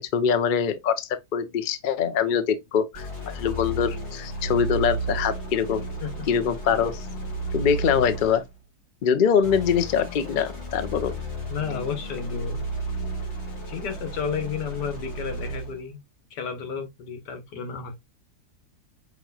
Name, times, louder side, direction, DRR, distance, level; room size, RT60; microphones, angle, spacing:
voice 1, 0.0-5.9 6.3-7.1 7.5-8.4 9.0-11.1, left 7 dB, 70° left, 0.4 m, -24 dB
sound 1, 2.9-8.5 9.4-15.8, right 2 dB, 45° left, 2.0 m, -33 dB
voice 2, 11.5-12.6 13.7-16.0 16.3-18.0, left 6 dB, 90° left, 1.8 m, -32 dB
5.8 x 3.1 x 2.3 m
omnidirectional pair, 1.8 m